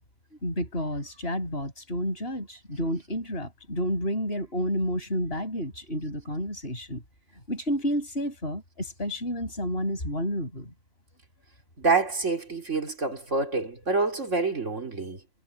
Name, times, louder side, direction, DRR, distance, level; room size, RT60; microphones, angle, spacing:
voice 1, 0.4-7.0 7.5-10.7, equal, 55° left, 7.1 m, -30 dB
voice 2, 11.8-15.2, right 3 dB, 85° right, 3.7 m, -27 dB
omnidirectional pair, 1.2 m